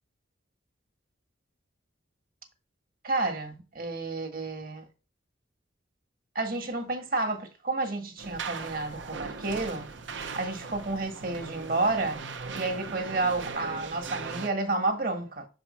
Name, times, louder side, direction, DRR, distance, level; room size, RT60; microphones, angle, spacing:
voice 1, 3.0-4.9 6.3-9.9 10.3-12.2 12.5-15.5, right 3 dB, 50° right, 1.5 m, -30 dB
sound 1, 8.2-14.5, right 4 dB, 70° right, 0.8 m, -39 dB
6.8 x 4.9 x 4.2 m
head